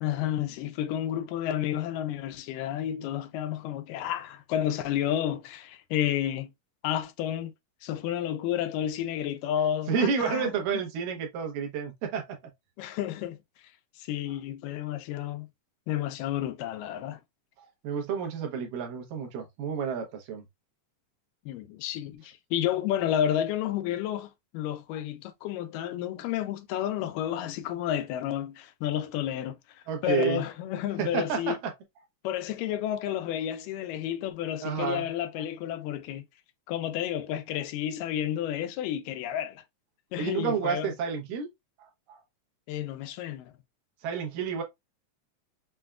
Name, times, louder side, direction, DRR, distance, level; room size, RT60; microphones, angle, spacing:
voice 1, 0.0-6.5 6.8-7.5 7.8-10.5 12.8-13.4 14.0-15.5 15.9-17.2 21.5-31.6 32.2-36.2 36.7-39.6 40.1-40.9 42.7-43.5, left 11 dB, 85° left, 2.2 m, -31 dB
voice 2, 9.9-12.2 17.6-20.4 29.9-30.4 31.0-31.6 34.6-35.0 40.2-41.5 41.8-42.2 44.0-44.6, right 6 dB, 80° right, 2.6 m, -30 dB
6.1 x 2.2 x 2.3 m
omnidirectional pair, 3.9 m